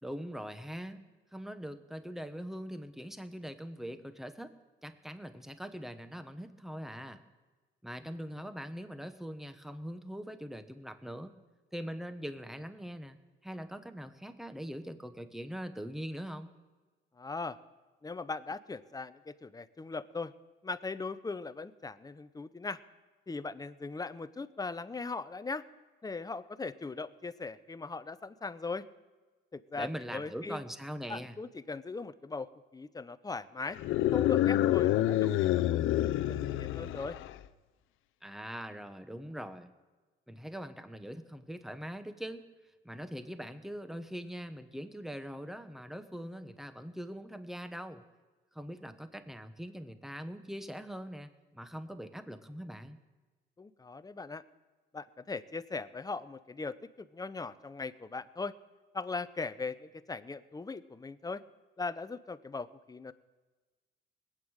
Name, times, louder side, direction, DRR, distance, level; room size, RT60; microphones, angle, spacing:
voice 1, 0.0-1.0 1.3-4.5 4.8-7.2 7.8-11.3 11.7-13.2 13.4-16.5 29.8-31.3 38.2-39.7 40.3-42.4 42.8-48.0 48.5-53.0, equal, ahead, 10 dB, 1.1 m, -42 dB
voice 2, 17.2-17.6 18.0-20.3 20.6-22.8 23.3-25.7 26.0-28.8 29.5-30.6 31.1-33.8 34.1-35.6 36.0-37.2 53.6-54.4 54.9-58.5 58.9-61.4 61.8-63.1, left 4 dB, 20° left, 13 dB, 0.7 m, -39 dB
sound 1, 33.8-37.4, left 13 dB, 85° left, 0.6 m, -28 dB
20.0 x 9.0 x 6.4 m, 1.3 s
cardioid pair, 90°, 20 cm